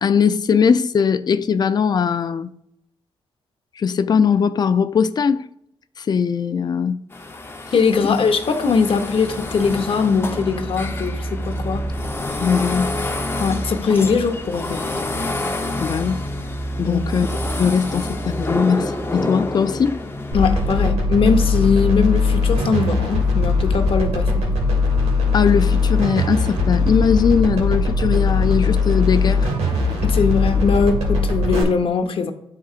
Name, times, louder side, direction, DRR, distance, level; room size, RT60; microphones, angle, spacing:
voice 1, 0.0-2.5 3.8-5.5 6.0-7.0 8.0-8.2 12.4-12.9 15.8-16.2 16.8-17.3 17.6-20.0 25.3-29.5, left 6 dB, 40° left, 0.4 m, -19 dB
sound 1, 7.1-20.9, left 1 dB, 20° left, 0.8 m, -27 dB
voice 2, 7.7-11.9 13.4-14.9 16.8-17.0 20.3-24.4 30.0-32.3, left 5 dB, 60° left, 0.8 m, -20 dB
sound 2, 20.3-31.6, left 3 dB, 85° right, 1.5 m, -19 dB
10.5 x 3.7 x 2.4 m
cardioid pair, 70°, 11 cm